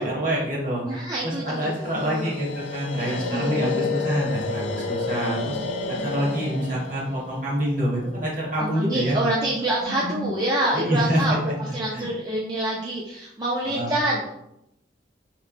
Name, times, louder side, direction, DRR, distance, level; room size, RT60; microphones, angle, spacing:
voice 1, 0.0-0.8 1.2-5.6 5.9-9.2 9.8-10.3 10.7-11.5 11.9-12.1 13.6-13.9, equal, 45° right, -3 dB, 1.1 m, -26 dB
voice 2, 0.8-2.4 3.0-4.3 5.2-6.5 8.6-14.3, right 1 dB, 20° right, -5 dB, 0.4 m, -28 dB
sound 1, 1.5-8.6, left 4 dB, 85° left, 0.4 m, -31 dB
3.3 x 3.0 x 2.5 m, 0.82 s
head